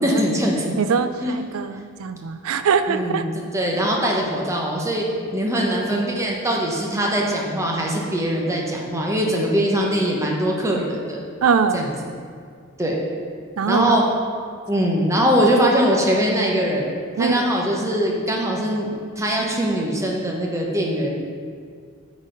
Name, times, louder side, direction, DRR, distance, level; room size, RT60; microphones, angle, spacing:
voice 1, 0.0-0.7 1.2-1.3 2.9-3.2 3.5-5.1 5.3-11.2 11.7-11.9 12.8-13.0 13.7-14.0 14.7-16.9 17.2-21.1, equal, 15° right, -2 dB, 1.0 m, -22 dB
voice 2, 0.8-3.2 11.4-11.9 13.6-14.0 17.2-17.5, right 5 dB, 75° right, 10 dB, 0.4 m, -22 dB
8.9 x 4.1 x 5.1 m, 2.1 s
head